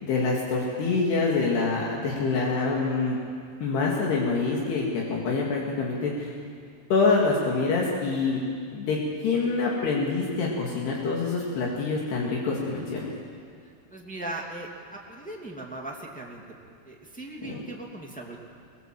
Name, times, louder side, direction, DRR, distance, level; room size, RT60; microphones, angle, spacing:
voice 1, 0.0-3.2 3.6-6.3 6.9-8.4 8.7-13.0 17.4-17.6, left 4 dB, 70° left, -3 dB, 4.3 m, -26 dB
voice 2, 13.9-16.4 16.8-18.4, right 2 dB, 5° left, -2 dB, 1.2 m, -38 dB
23.5 x 19.5 x 7.6 m, 2.2 s
omnidirectional pair, 4.9 m